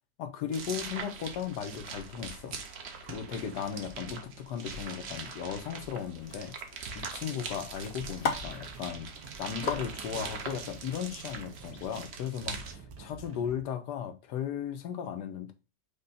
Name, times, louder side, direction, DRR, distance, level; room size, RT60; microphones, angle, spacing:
voice 1, 0.2-2.6 3.0-9.1 9.4-15.5, left 8 dB, 90° left, 1.3 m, -36 dB
sound 1, 0.5-12.7, right 5 dB, 55° right, 0.7 m, -42 dB
sound 2, 5.7-12.3, left 5 dB, 55° left, 0.7 m, -40 dB
sound 3, 7.9-12.1 12.4-13.7, right 5 dB, 80° right, 1.4 m, -50 dB
5.2 x 2.2 x 3.9 m
omnidirectional pair, 1.7 m